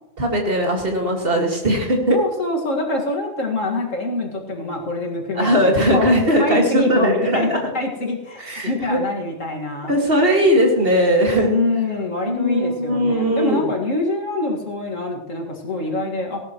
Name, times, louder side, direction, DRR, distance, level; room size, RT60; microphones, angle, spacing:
voice 1, 0.2-2.2 5.3-7.6 8.4-9.0 9.9-11.5 12.3-13.6, equal, 45° right, 1 dB, 2.3 m, -19 dB
voice 2, 2.1-6.1 6.4-10.0 11.4-16.4, left 2 dB, 65° left, 0 dB, 2.4 m, -25 dB
18.5 x 12.0 x 3.1 m, 1.1 s
omnidirectional pair, 1.4 m